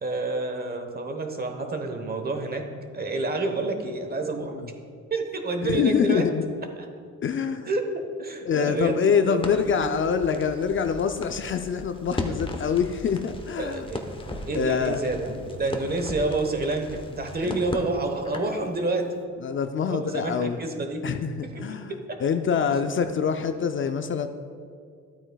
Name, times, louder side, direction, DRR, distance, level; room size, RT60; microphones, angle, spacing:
voice 1, 0.0-2.6 2.9-4.6 5.1-6.2 7.7-9.9 13.6-19.2 19.9-21.0 21.4-22.2, right 2 dB, 30° right, 5 dB, 1.1 m, -29 dB
voice 2, 5.6-6.4 7.2-7.7 8.5-13.8 14.5-15.0 17.4-17.6 19.4-20.6 21.0-21.9 22.2-24.3, left 6 dB, 40° left, 8 dB, 0.5 m, -25 dB
Crackle, 9.4-18.6, left 2 dB, 15° left, 0.9 m, -37 dB
12.5 x 8.7 x 2.3 m, 2.3 s
cardioid pair, 90°, 30 cm